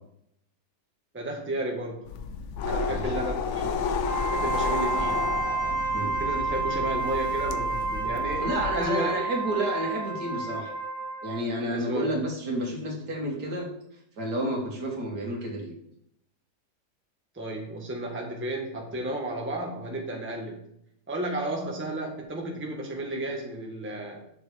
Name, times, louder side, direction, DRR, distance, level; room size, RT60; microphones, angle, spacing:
voice 1, 1.1-2.0 2.6-3.8 4.3-5.3 6.2-9.3 11.7-12.1 17.3-20.6 21.1-24.2, right 1 dB, 10° right, -1 dB, 1.0 m, -33 dB
sound 1, 2.1-8.9, left 5 dB, 65° left, 0.7 m, -32 dB
Wind instrument woodwind instrument, 4.0-11.4, right 4 dB, 35° left, 2.2 m, -30 dB
voice 2, 8.4-10.8 11.2-13.7 14.2-15.7, right 1 dB, 75° right, 0 dB, 2.2 m, -30 dB
6.9 x 6.5 x 3.4 m, 0.73 s
omnidirectional pair, 1.8 m